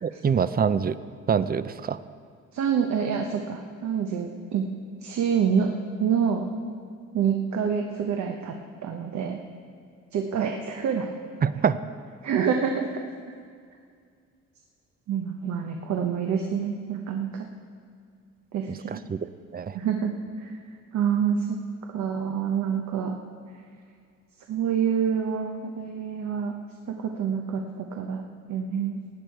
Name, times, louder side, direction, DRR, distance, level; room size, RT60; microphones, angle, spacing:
voice 1, 0.0-1.0 1.3-2.0 11.4-11.8 18.7-19.3 19.5-19.8, right 7 dB, 30° right, 14 dB, 0.5 m, -25 dB
voice 2, 2.5-4.7 5.0-5.7 6.0-6.5 7.1-8.5 8.8-9.4 10.1-11.1 12.2-13.0 15.1-17.5 18.5-19.0 19.7-20.5 20.9-21.6 21.9-23.1 24.5-26.5 26.9-28.2 28.5-29.0, right 7 dB, 65° right, 3 dB, 1.0 m, -27 dB
17.0 x 9.3 x 4.6 m, 2.2 s
cardioid pair, 90°, 30 cm